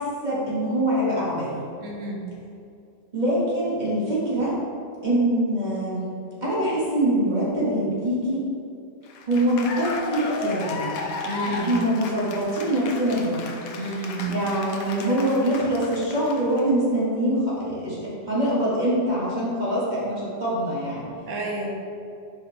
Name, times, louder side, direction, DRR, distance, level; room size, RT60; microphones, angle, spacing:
voice 1, 0.0-1.6 3.1-4.6 5.0-6.1 6.4-8.5 9.3-10.9 11.4-13.4 14.3-21.1, right 1 dB, 30° right, -8 dB, 1.7 m, -24 dB
voice 2, 1.8-2.3 11.2-11.7 13.7-14.4 21.3-21.7, right 2 dB, 65° right, -1 dB, 1.3 m, -30 dB
Cheering / Applause, 9.1-16.6, left 4 dB, 80° left, 1.1 m, -34 dB
6.5 x 5.5 x 3.2 m, 2.5 s
omnidirectional pair, 1.5 m